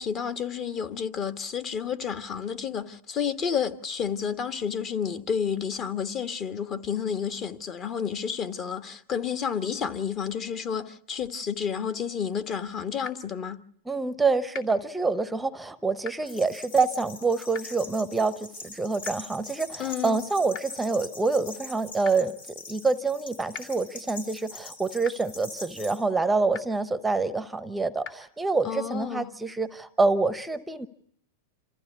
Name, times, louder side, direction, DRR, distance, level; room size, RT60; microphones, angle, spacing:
voice 1, 0.0-13.6 19.8-20.2 28.6-29.3, left 7 dB, 35° left, 1.4 m, -30 dB
sound 1, 13.0-13.1 14.5-14.6 16.0-16.1 17.5-17.6 19.0-19.1 20.5-20.6 22.0-22.1 23.5-23.6 25.0-25.1 26.5-26.6 28.0-28.1, left 7 dB, 55° left, 2.9 m, -37 dB
voice 2, 13.9-30.9, right 3 dB, 5° right, 0.9 m, -26 dB
sound 2, 16.2-26.0, left 3 dB, 85° left, 7.1 m, -43 dB
27.0 x 15.0 x 8.3 m
supercardioid pair, 130°, 0 cm